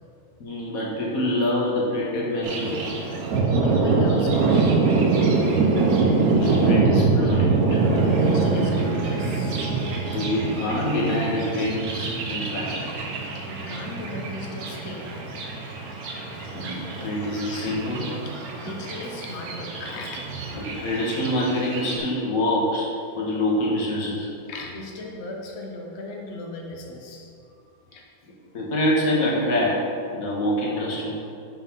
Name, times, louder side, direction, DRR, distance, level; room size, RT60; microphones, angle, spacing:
voice 1, 0.4-3.0 5.8-7.8 10.1-12.7 16.5-18.1 20.5-22.9 23.2-24.3 28.5-29.8 30.1-31.1, left 1 dB, 50° left, -4 dB, 1.5 m, -26 dB
Thunder, 2.4-22.0, right 3 dB, 60° right, 1.1 m, -24 dB
voice 2, 3.6-5.0 8.1-9.7 13.2-15.1 18.2-20.3 24.5-27.3 27.9-28.0, left 2 dB, 75° left, 0 dB, 0.6 m, -37 dB
sound 1, 5.6-8.9 9.5-9.8 10.1-10.5 10.8-10.9 11.7-11.8 12.3-12.4 12.9-13.3 14.2-14.3 17.1-18.1 20.1-21.2 21.7-22.4, right 5 dB, 85° right, 1.6 m, -41 dB
Brass instrument, 6.5-11.5, left 1 dB, 40° right, 0.4 m, -41 dB
5.6 x 4.4 x 5.5 m, 2.5 s
omnidirectional pair, 2.2 m